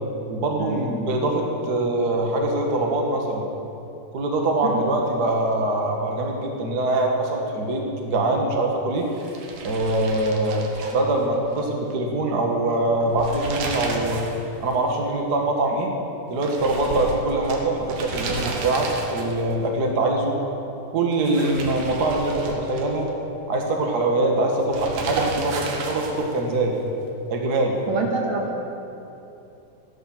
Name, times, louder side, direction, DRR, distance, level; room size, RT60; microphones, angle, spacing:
voice 1, 0.3-3.4 4.1-9.1 9.6-14.2 14.6-15.9 16.3-20.3 20.9-23.1 23.5-26.7 27.3-27.7, right 2 dB, 45° right, 1 dB, 1.4 m, -23 dB
sound 1, 9.1-11.6 11.9-12.0 13.0-14.4 14.7-14.8 16.4-19.5 21.1-23.1 24.7-26.4, right 3 dB, 90° right, 3.0 m, -32 dB
voice 2, 27.9-28.6, right 3 dB, 60° right, -1 dB, 3.0 m, -26 dB
16.0 x 10.5 x 6.0 m, 2.8 s
omnidirectional pair, 3.7 m